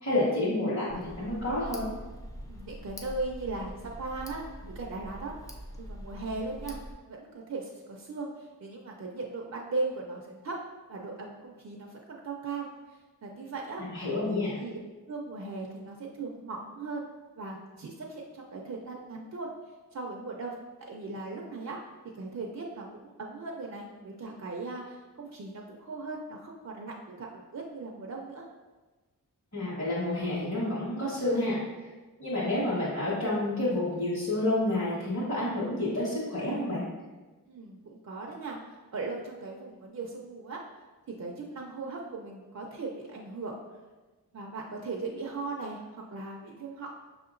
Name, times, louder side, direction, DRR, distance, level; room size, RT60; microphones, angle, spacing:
voice 1, 0.0-1.9 13.8-14.6 29.5-31.6 32.2-36.8, left 1 dB, 50° left, -10 dB, 1.4 m, -29 dB
Tick, 0.9-6.9, equal, 10° left, 0.4 m, -44 dB
voice 2, 2.4-5.3 5.8-6.8 7.1-10.6 10.9-13.8 14.6-14.8 15.1-17.0 17.4-19.5 19.9-20.6 20.9-21.8 22.1-28.5 37.5-40.6 41.2-43.5 44.3-46.9, right 3 dB, 50° right, -1 dB, 0.5 m, -38 dB
5.6 x 2.8 x 2.5 m, 1.3 s
wide cardioid pair, 75°, 35 cm